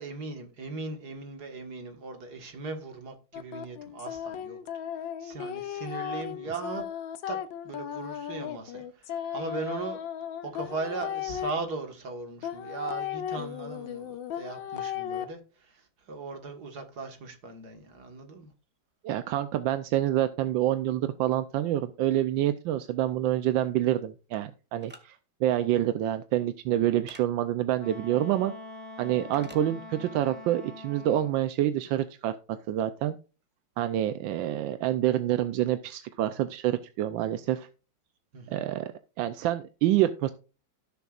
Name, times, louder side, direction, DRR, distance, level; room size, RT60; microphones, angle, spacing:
voice 1, 0.0-4.6 5.0-6.9 7.3-7.4 7.6-10.0 10.4-18.5 38.3-38.6, right 3 dB, 60° right, 2.1 m, -38 dB
sound 1, 3.3-11.5 12.4-15.2, left 9 dB, 85° left, 1.6 m, -36 dB
voice 2, 19.0-28.5 29.0-33.1 33.8-37.7 38.5-38.9 39.2-40.3, right 12 dB, 85° right, 1.4 m, -27 dB
sound 2, 24.8-25.0 27.1-27.3 29.3-29.6, equal, 5° right, 1.4 m, -48 dB
Wind instrument woodwind instrument, 27.8-31.5, left 2 dB, 50° left, 3.5 m, -44 dB
17.0 x 7.0 x 2.4 m
omnidirectional pair, 2.0 m